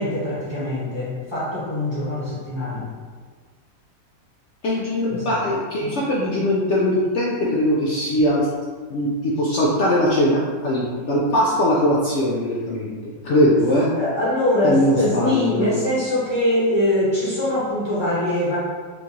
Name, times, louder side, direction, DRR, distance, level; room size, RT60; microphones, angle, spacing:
voice 1, 0.0-2.9 5.1-5.3 5.8-5.9 13.9-18.6, left 1 dB, 20° left, -10 dB, 0.9 m, -23 dB
voice 2, 4.6-8.5 8.9-13.9 14.6-15.7, equal, 70° left, -5 dB, 0.7 m, -21 dB
4.4 x 2.4 x 2.8 m, 1.5 s
omnidirectional pair, 1.7 m